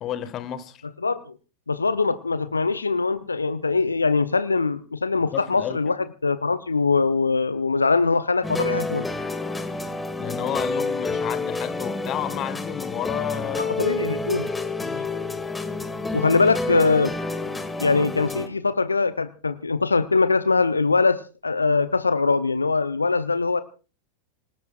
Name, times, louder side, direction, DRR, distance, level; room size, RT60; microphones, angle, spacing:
voice 1, 0.0-0.8 5.3-6.0 10.2-13.8 14.8-15.1 16.4-16.5, left 11 dB, 35° left, 1.5 m, -31 dB
voice 2, 1.7-5.9 6.2-9.1 13.7-14.5 16.1-17.1 17.8-23.6, left 4 dB, 80° left, 0.7 m, -22 dB
sound 1, 8.4-18.5, left 3 dB, 10° left, 1.8 m, -29 dB
26.5 x 19.0 x 2.4 m
figure-of-eight pair, 90°, 0 cm